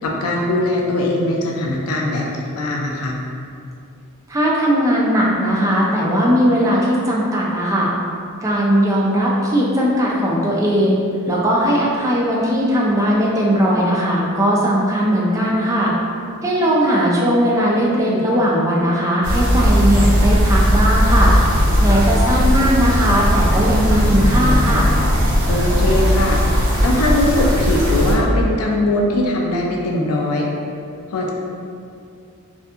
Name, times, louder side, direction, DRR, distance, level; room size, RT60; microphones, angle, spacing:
voice 1, 0.0-3.2 18.1-18.2 25.5-26.4 26.8-30.5 31.1-31.3, left 1 dB, 80° left, -1 dB, 0.4 m, -20 dB
voice 2, 4.3-7.9 8.4-11.0 11.3-15.9 16.4-21.4 21.8-24.9, equal, 15° right, -5 dB, 0.3 m, -18 dB
sound 1, 19.2-28.2, equal, 80° right, 0.7 m, -17 dB
2.6 x 2.4 x 2.4 m, 2.4 s
head